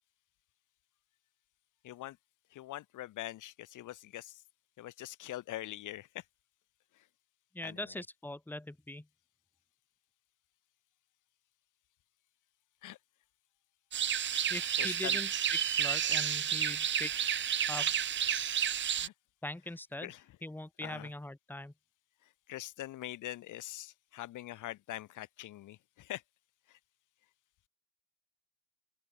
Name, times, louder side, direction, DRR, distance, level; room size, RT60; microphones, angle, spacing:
voice 1, 1.8-2.2 2.5-4.4 4.8-6.2 7.6-7.8 12.8-13.0 14.8-15.2 16.1-16.2 18.9-19.1 20.0-20.2 20.8-21.1 22.5-26.2 26.7-26.8, left 15 dB, 85° left, 3.6 m, -43 dB
voice 2, 7.5-9.1 14.5-17.1 17.7-17.9 19.4-20.1 20.4-21.7, left 1 dB, 5° left, 1.6 m, -41 dB
sound 1, 13.9-19.1, right 9 dB, 40° right, 0.6 m, -31 dB
open air
cardioid pair, 90°, 30 cm